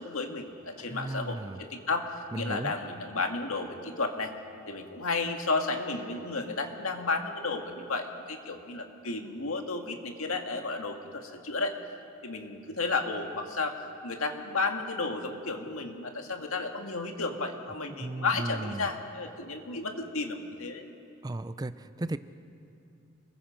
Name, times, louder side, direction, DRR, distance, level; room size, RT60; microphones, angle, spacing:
voice 1, 0.0-4.3 4.7-11.7 12.2-20.8, left 3 dB, 85° left, 3 dB, 2.0 m, -33 dB
voice 2, 0.9-1.6 2.3-2.7 18.0-18.9 21.2-22.2, right 2 dB, 20° right, 13 dB, 0.5 m, -35 dB
28.5 x 21.5 x 5.2 m, 2.6 s
head